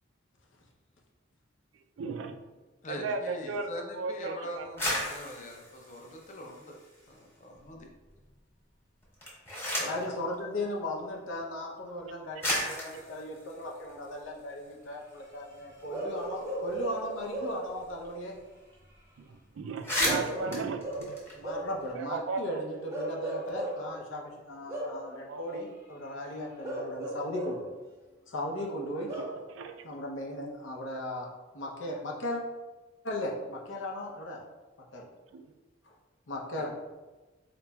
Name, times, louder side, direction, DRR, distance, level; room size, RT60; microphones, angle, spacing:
voice 1, 2.0-2.4 3.0-3.7 4.0-4.7 19.3-21.1 22.0-22.6 25.3-25.6 29.2-29.3 29.5-29.8 35.3-35.5, right 4 dB, 85° right, 6 dB, 0.4 m, -35 dB
voice 2, 2.8-6.8 7.1-7.9 9.8-10.0 36.6-36.7, left 1 dB, 40° left, 1 dB, 0.5 m, -42 dB
sound 1, 4.6-7.2 7.6-8.2 9.0-10.1 11.2-11.3 12.0-12.1 12.4-14.7 15.1-15.2 15.4-18.1 18.3-18.4 18.7-19.0 19.3-19.4 19.7-21.9, left 1 dB, 15° left, 1.0 m, -35 dB
voice 3, 9.8-18.4 21.4-27.7 28.3-29.1 29.8-32.4 33.0-34.4 34.9-35.1 35.8-35.9 36.3-36.7, left 1 dB, 85° left, -1 dB, 0.7 m, -37 dB
Bark / Livestock farm animals working animals, 15.9-17.7 20.0-21.8 22.9-23.9 24.7-25.1 26.6-27.7 29.0-29.4, right 1 dB, 15° right, 0.6 m, -36 dB
4.0 x 3.0 x 2.3 m, 1.2 s
head